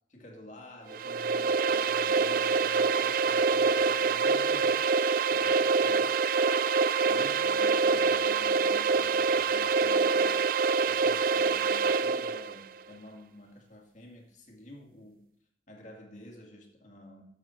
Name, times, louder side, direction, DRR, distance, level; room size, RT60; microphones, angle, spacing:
voice 1, 0.1-4.9 5.3-6.2 7.0-10.4 10.8-15.3 15.7-17.2, left 1 dB, 40° left, 1 dB, 2.3 m, -50 dB
sound 1, 0.9-12.6, right 5 dB, 50° right, 0.3 m, -26 dB
13.5 x 7.5 x 4.5 m, 0.71 s
head